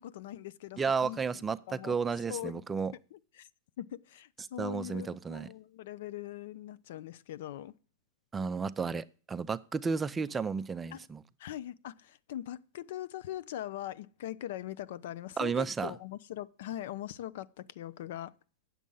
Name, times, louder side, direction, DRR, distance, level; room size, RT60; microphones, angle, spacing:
voice 1, 0.0-2.0 2.3-2.8 3.1-3.5 3.8-7.7 10.9-11.1 11.4-18.3, left 12 dB, 65° left, 0.5 m, -41 dB
voice 2, 0.8-2.9 4.6-5.5 8.3-11.2 15.4-15.9, right 5 dB, 15° right, 0.4 m, -32 dB
8.5 x 7.4 x 5.4 m
hypercardioid pair, 125°, 0 cm